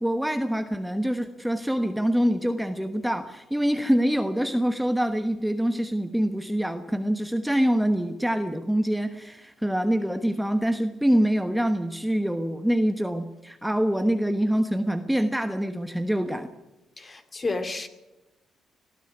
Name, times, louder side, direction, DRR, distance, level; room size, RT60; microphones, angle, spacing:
voice 1, 0.0-16.5, equal, 5° right, 1.2 m, -25 dB
voice 2, 17.0-17.9, left 3 dB, 30° left, 2.6 m, -31 dB
20.5 x 13.5 x 9.7 m
cardioid pair, 90°, 0 cm